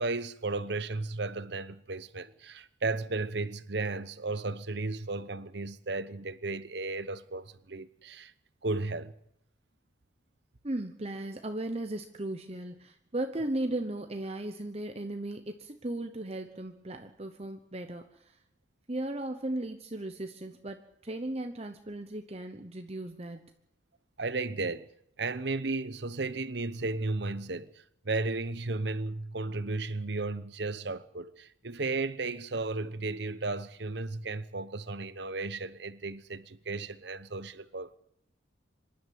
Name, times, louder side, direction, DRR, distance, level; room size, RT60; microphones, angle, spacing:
voice 1, 0.0-8.3 8.6-9.1 24.2-24.9 25.2-38.0, right 3 dB, 60° right, 1.0 m, -34 dB
voice 2, 10.6-18.4 18.9-23.5, right 1 dB, 30° right, 1.0 m, -36 dB
25.5 x 11.5 x 9.4 m
head